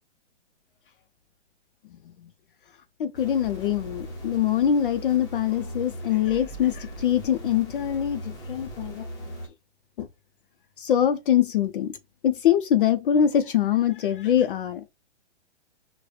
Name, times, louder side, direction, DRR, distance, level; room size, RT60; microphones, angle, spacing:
voice 1, 3.0-9.1 10.0-10.1 10.8-12.0 12.2-14.8, left 9 dB, 50° left, 0.5 m, -23 dB
sound 1, 3.1-9.5, equal, 10° left, 0.8 m, -39 dB
4.7 x 2.1 x 3.1 m
hypercardioid pair, 145°, 34 cm